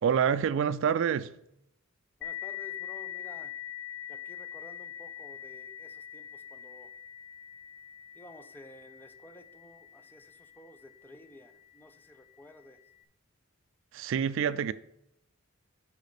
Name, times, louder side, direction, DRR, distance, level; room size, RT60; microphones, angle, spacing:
voice 1, 0.0-1.3 13.9-14.7, right 7 dB, 65° right, 0.3 m, -27 dB
sound 1, 2.2-11.4, left 10 dB, 60° left, 0.5 m, -43 dB
voice 2, 2.2-3.6 4.1-6.9 8.1-12.8, left 2 dB, 10° left, 0.5 m, -53 dB
6.6 x 5.1 x 4.9 m
head